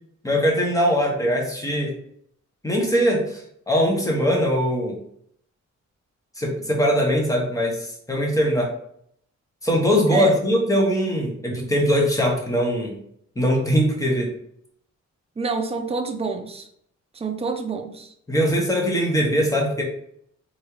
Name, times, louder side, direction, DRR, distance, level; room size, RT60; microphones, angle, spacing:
voice 1, 0.2-1.9 2.6-5.0 6.4-8.7 9.6-13.0 13.4-14.3 18.3-19.8, equal, 10° left, -1 dB, 1.1 m, -21 dB
voice 2, 15.4-16.7 17.1-18.1, right 4 dB, 20° right, 4 dB, 0.6 m, -28 dB
4.1 x 3.7 x 3.2 m, 0.69 s
wide cardioid pair, 130°, 29 cm